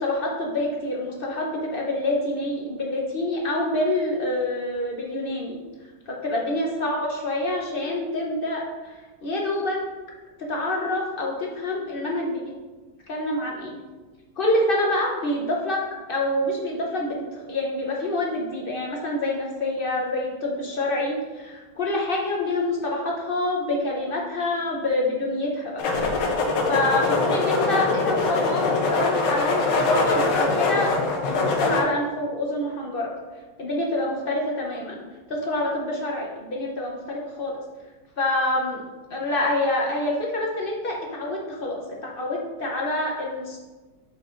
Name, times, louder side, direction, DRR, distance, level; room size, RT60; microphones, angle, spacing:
voice 1, 0.0-5.6 6.2-9.8 10.4-12.4 13.1-13.8 14.4-15.8 16.1-25.8 26.7-30.9 31.2-33.1 33.6-35.0 35.3-37.6 38.2-38.8 39.1-43.6, left 1 dB, 55° left, -1 dB, 0.6 m, -26 dB
sound 1, 25.8-31.8, left 3 dB, 80° left, 1.4 m, -23 dB
7.1 x 5.4 x 2.5 m, 1.3 s
omnidirectional pair, 1.9 m